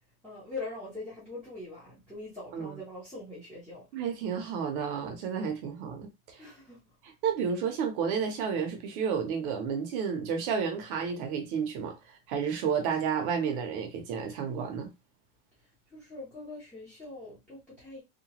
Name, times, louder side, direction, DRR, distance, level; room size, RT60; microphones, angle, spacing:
voice 1, 0.2-3.9 6.4-6.9 15.6-18.0, left 2 dB, 5° left, 0.5 m, -43 dB
voice 2, 3.9-6.4 7.2-11.9 12.3-14.9, right 6 dB, 40° right, 0.6 m, -31 dB
2.9 x 2.2 x 2.8 m
supercardioid pair, 175°, 43 cm